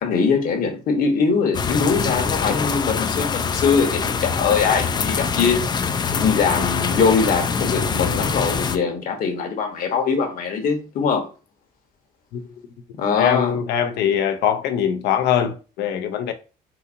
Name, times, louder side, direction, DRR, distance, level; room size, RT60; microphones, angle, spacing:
voice 1, 0.0-5.7 6.1-11.3 12.9-13.6, left 5 dB, 60° left, 1.0 m, -22 dB
sound 1, 1.5-8.8, left 6 dB, 25° left, 0.3 m, -24 dB
voice 2, 13.1-16.3, left 9 dB, 80° left, 0.6 m, -22 dB
4.0 x 2.6 x 2.5 m
cardioid pair, 110°, 17 cm